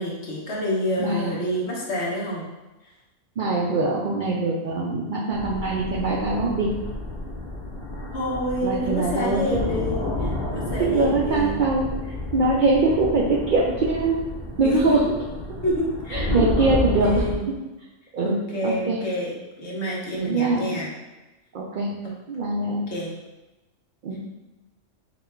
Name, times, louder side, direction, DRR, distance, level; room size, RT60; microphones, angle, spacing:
voice 1, 0.0-2.5 8.1-11.6 14.6-15.0 15.6-16.3 16.6-16.7 17.0-17.5 18.2-20.9 22.9-23.1, equal, 60° left, -4 dB, 1.2 m, -28 dB
voice 2, 1.0-1.3 3.4-6.7 8.6-9.6 10.8-11.9 12.3-14.2 14.6-15.0 16.1-17.3 18.1-19.0 20.2-20.7 21.5-21.9 22.3-22.8 24.0-24.2, right 3 dB, 65° right, -4 dB, 0.5 m, -23 dB
sound 1, 5.3-17.3, left 1 dB, 20° left, 1.3 m, -30 dB
4.0 x 2.2 x 4.4 m, 1.1 s
omnidirectional pair, 1.3 m